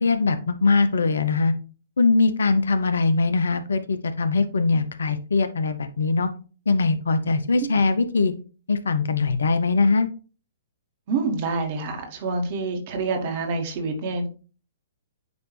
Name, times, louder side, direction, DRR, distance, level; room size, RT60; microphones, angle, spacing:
voice 1, 0.0-1.5 2.0-6.3 6.7-8.3 8.7-10.1, left 4 dB, 70° left, 11 dB, 0.7 m, -21 dB
voice 2, 11.1-14.3, right 3 dB, 45° right, 3 dB, 1.7 m, -27 dB
9.3 x 3.1 x 3.3 m, 0.36 s
figure-of-eight pair, 115°, 0 cm